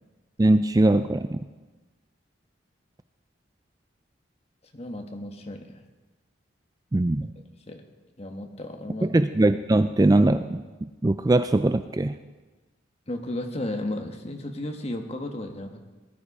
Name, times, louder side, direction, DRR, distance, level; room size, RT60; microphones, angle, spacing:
voice 1, 0.4-1.4 6.9-7.3 9.1-12.1, right 2 dB, 20° right, 10 dB, 0.3 m, -21 dB
voice 2, 4.7-5.8 7.7-7.8 8.2-9.1 13.1-15.9, left 1 dB, 30° left, 4 dB, 1.3 m, -34 dB
19.0 x 11.0 x 4.9 m, 1.2 s
head